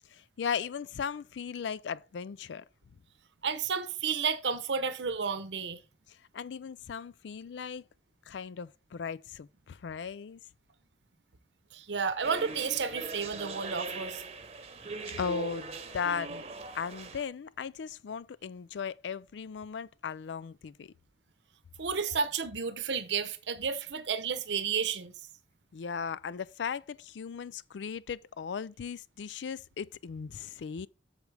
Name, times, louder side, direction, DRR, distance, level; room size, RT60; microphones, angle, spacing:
voice 1, 0.1-2.6 6.1-7.9 8.3-10.4 15.2-16.4 16.7-20.9 25.7-30.9, left 6 dB, 85° left, 0.4 m, -37 dB
voice 2, 3.4-5.8 11.7-14.2 21.8-25.1, right 6 dB, 80° right, 0.8 m, -32 dB
sound 1, 12.2-17.2, right 3 dB, 35° right, 0.9 m, -41 dB
8.1 x 6.5 x 3.3 m
head